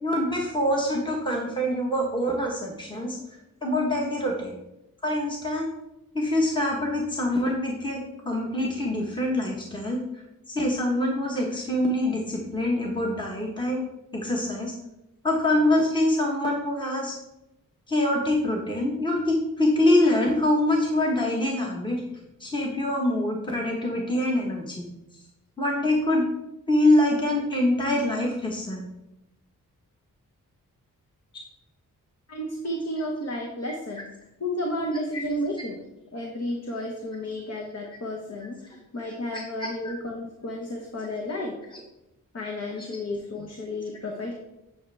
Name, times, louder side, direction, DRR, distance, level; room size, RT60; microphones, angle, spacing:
voice 1, 0.0-3.2 3.6-4.6 5.0-5.7 6.1-10.0 10.5-13.9 14.1-14.7 15.2-17.2 17.9-22.0 22.4-24.8 25.6-26.2 26.7-28.9 39.3-39.7, left 1 dB, 15° left, -1 dB, 1.3 m, -25 dB
voice 2, 32.3-34.1 34.4-35.8 36.1-41.6 42.3-44.3, left 1 dB, 50° left, 1 dB, 1.3 m, -32 dB
9.6 x 6.0 x 3.4 m, 0.90 s
wide cardioid pair, 100°, 33 cm